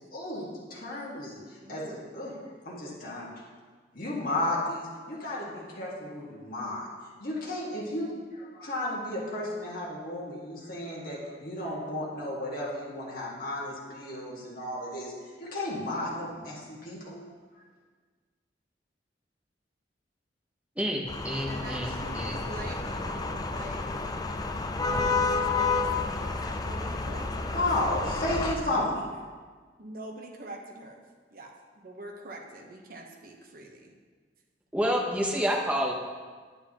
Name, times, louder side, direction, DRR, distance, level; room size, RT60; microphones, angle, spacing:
voice 1, 0.1-1.4 1.7-2.3 2.7-3.3 3.9-6.9 7.2-15.1 15.4-17.2 27.5-29.0, left 1 dB, 55° left, -6 dB, 1.9 m, -33 dB
voice 2, 1.6-2.1 21.5-23.9 24.7-27.7 29.8-31.0 31.3-33.9 35.6-35.7, right 2 dB, 55° right, 1 dB, 1.1 m, -45 dB
voice 3, 20.8-22.4 34.7-35.9, equal, 10° right, -1 dB, 0.9 m, -29 dB
sound 1, 21.1-28.5, left 4 dB, 20° left, 0.5 m, -30 dB
9.5 x 9.0 x 3.0 m, 1.5 s
head